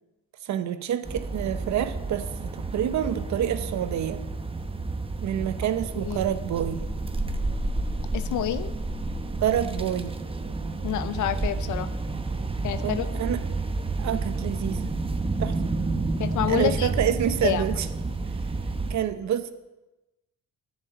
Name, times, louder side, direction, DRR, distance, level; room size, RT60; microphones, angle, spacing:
voice 1, 0.4-4.2 5.2-6.8 9.4-10.2 12.8-13.4 14.0-14.9 15.4-15.6 16.5-17.9 18.9-19.5, right 10 dB, 65° right, 12 dB, 0.8 m, -27 dB
sound 1, 1.0-18.9, right 3 dB, 20° right, 0.9 m, -30 dB
voice 2, 8.1-8.7 10.8-11.9 12.6-13.1 16.2-16.9 17.4-17.6, left 11 dB, 75° left, 13 dB, 0.7 m, -28 dB
9.8 x 7.4 x 7.9 m, 1.0 s
cardioid pair, 90°, 30 cm